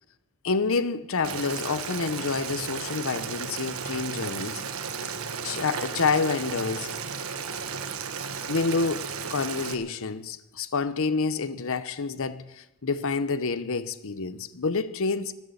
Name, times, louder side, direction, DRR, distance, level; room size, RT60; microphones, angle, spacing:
voice 1, 0.4-4.6 5.4-6.9 8.5-15.3, left 4 dB, 65° left, 0.8 m, -28 dB
Boiling, 1.2-9.7, right 6 dB, 65° right, 1.5 m, -34 dB
13.5 x 13.0 x 8.3 m
head